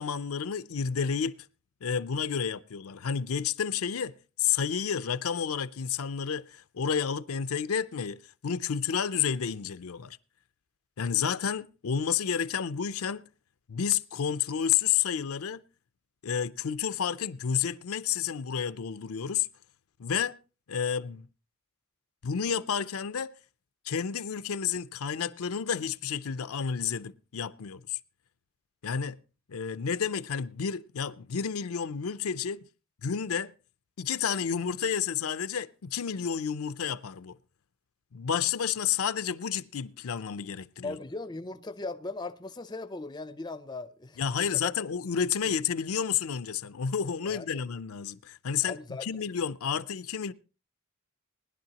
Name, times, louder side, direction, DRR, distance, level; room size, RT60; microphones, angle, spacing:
voice 1, 0.0-1.5 1.8-10.2 11.0-13.2 13.7-15.6 16.2-19.5 20.0-20.4 20.7-21.3 22.2-23.3 23.8-28.0 28.8-29.2 29.5-32.7 33.0-33.5 34.0-37.4 38.1-41.0 44.2-50.3, left 7 dB, 70° left, 0.5 m, -30 dB
voice 2, 40.8-44.7 47.2-47.7 48.6-49.1 49.8-49.9, left 3 dB, 20° left, 0.5 m, -39 dB
19.5 x 11.0 x 2.9 m
head